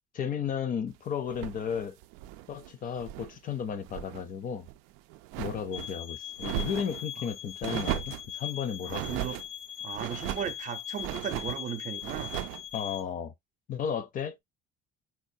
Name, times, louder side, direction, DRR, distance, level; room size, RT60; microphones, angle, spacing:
voice 1, 0.1-2.0 2.5-4.7 5.4-9.2 12.7-13.3 13.7-14.4, left 7 dB, 40° left, 0.6 m, -34 dB
sound 1, 1.3-3.4 3.7-4.2 4.6-5.9 6.4-7.0 7.6-8.3 8.9-9.5 9.9-10.6 11.0-11.6 12.0-12.6, right 14 dB, 85° right, 0.4 m, -37 dB
sound 2, 5.7-13.0, left 10 dB, 75° left, 0.8 m, -40 dB
voice 2, 8.8-9.4 9.8-12.3, right 8 dB, 40° right, 0.6 m, -36 dB
4.5 x 2.4 x 2.7 m
cardioid pair, 110°, 21 cm